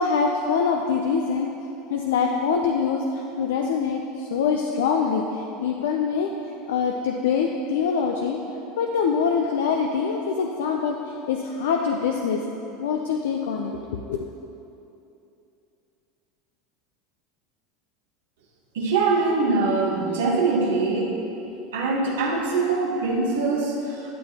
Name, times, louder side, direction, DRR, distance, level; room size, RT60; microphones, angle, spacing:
voice 1, 0.0-1.5 1.9-6.3 6.7-8.4 8.8-11.0 11.3-12.4 12.8-14.2, left 6 dB, 80° left, 2 dB, 0.4 m, -24 dB
voice 2, 18.7-21.2 21.7-24.1, right 3 dB, 85° right, -1 dB, 1.2 m, -23 dB
11.5 x 6.2 x 2.8 m, 2.8 s
hypercardioid pair, 100°, 0 cm